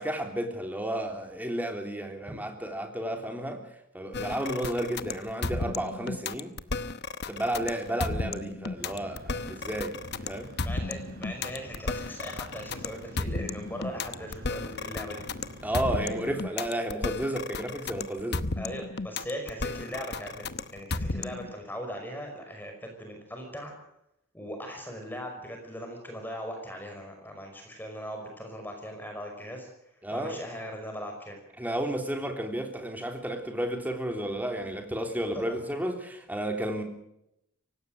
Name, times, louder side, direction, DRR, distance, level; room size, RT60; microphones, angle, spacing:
voice 1, 0.0-3.6 3.9-6.5 7.3-10.0 10.2-10.5 15.6-18.4 30.0-30.4 31.6-36.8, right 1 dB, 10° right, 3.2 m, -32 dB
sound 1, 4.1-21.5, left 3 dB, 50° left, 1.0 m, -34 dB
sound 2, 8.8-16.4, equal, 45° right, 4.5 m, -47 dB
voice 2, 10.6-15.3 15.9-16.4 16.7-16.8 18.6-23.7 24.3-29.7 30.1-31.4 35.3-35.6, equal, 10° left, 5.4 m, -39 dB
24.5 x 18.5 x 6.5 m
head